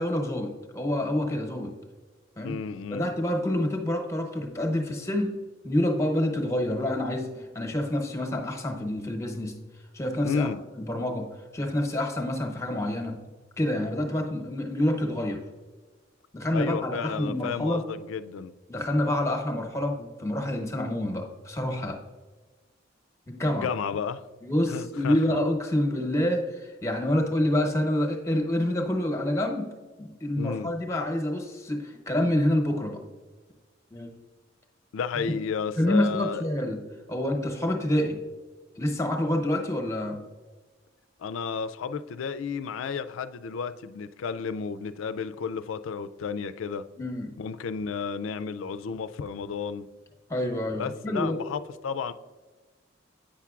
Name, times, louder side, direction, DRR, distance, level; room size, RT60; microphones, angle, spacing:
voice 1, 0.0-1.7 2.4-2.6 2.9-5.4 5.6-9.6 9.9-10.5 10.8-13.2 13.6-15.4 16.3-17.8 18.7-22.0 23.3-23.7 24.4-29.7 30.0-33.0 33.9-34.2 35.8-36.8 37.1-38.2 38.8-40.2 47.0-47.3 50.3-51.4, left 1 dB, 15° left, 0.9 m, -27 dB
voice 2, 2.4-3.1 10.2-10.6 16.5-18.6 23.5-24.2 24.7-25.4 30.4-30.8 34.9-36.4 41.2-46.8 47.4-49.9 50.8-52.1, left 6 dB, 90° left, 0.4 m, -32 dB
8.6 x 5.7 x 2.4 m
head